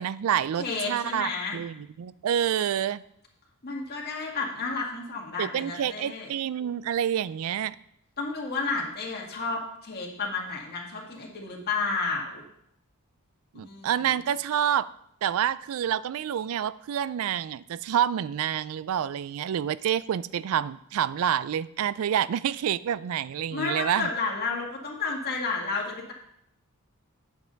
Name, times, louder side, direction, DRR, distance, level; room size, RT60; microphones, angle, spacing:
voice 1, 0.0-3.0 5.4-7.8 13.6-14.9 15.2-24.1, right 9 dB, 70° right, 18 dB, 0.3 m, -28 dB
voice 2, 0.6-1.6 3.6-6.3 8.2-12.4 13.5-14.1 23.5-26.1, left 4 dB, 45° left, -2 dB, 1.9 m, -31 dB
9.8 x 7.2 x 3.9 m, 0.74 s
head